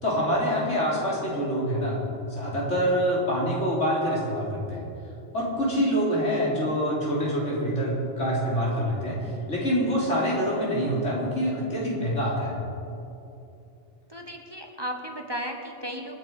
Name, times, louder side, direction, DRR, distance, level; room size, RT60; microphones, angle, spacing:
voice 1, 0.0-2.0 2.3-4.9 5.3-12.6, equal, 80° left, -6 dB, 4.5 m, -26 dB
voice 2, 14.1-16.2, equal, 20° right, 2 dB, 1.3 m, -35 dB
27.0 x 9.7 x 4.9 m, 2.7 s
omnidirectional pair, 1.2 m